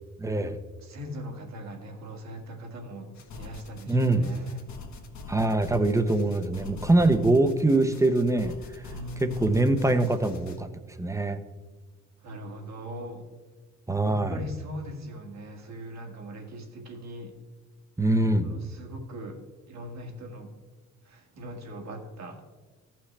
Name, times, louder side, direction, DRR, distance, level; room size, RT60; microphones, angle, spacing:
voice 1, 0.2-0.6 3.9-4.3 5.3-8.5 9.2-10.7 11.0-11.4 13.9-14.4 18.0-18.5, right 2 dB, 10° right, 9 dB, 0.7 m, -23 dB
voice 2, 0.8-4.6 6.8-7.3 8.9-9.6 12.2-13.2 14.0-17.3 18.4-19.4 19.7-20.5 21.1-22.4, equal, 65° right, 2 dB, 1.9 m, -40 dB
sound 1, 3.1-10.6, left 3 dB, 65° left, 1.3 m, -44 dB
14.5 x 5.8 x 3.3 m, 1.3 s
cardioid pair, 90°, 30 cm